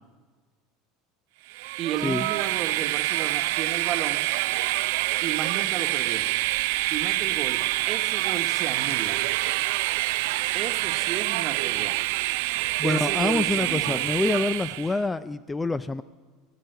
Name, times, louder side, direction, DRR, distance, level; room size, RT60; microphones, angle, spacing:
Train, 1.5-15.0, right 20 dB, 75° right, 0.4 m, -26 dB
voice 1, 1.8-4.2 5.2-6.3 6.9-7.6 7.9-9.2 10.5-12.0 12.8-14.0, right 9 dB, 40° right, 8 dB, 1.2 m, -33 dB
voice 2, 12.8-16.0, left 3 dB, 10° left, 14 dB, 0.3 m, -26 dB
17.0 x 9.2 x 7.8 m, 1.5 s
supercardioid pair, 145°, 0 cm